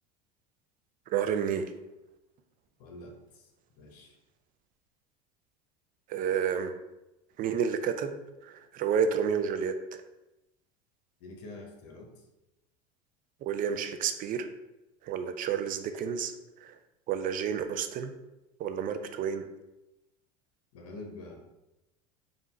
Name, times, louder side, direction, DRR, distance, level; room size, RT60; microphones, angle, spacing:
voice 1, 1.1-1.6 6.1-6.7 7.4-8.2 8.4-10.0 13.4-14.5 15.0-16.3 16.6-16.7 17.1-18.1 18.6-19.5, right 7 dB, 45° right, 8 dB, 0.5 m, -30 dB
voice 2, 2.8-3.5 3.8-4.1 11.2-12.3 20.7-21.4, left 2 dB, 80° left, 2 dB, 1.0 m, -46 dB
3.9 x 2.4 x 4.2 m, 0.96 s
supercardioid pair, 105°, 20 cm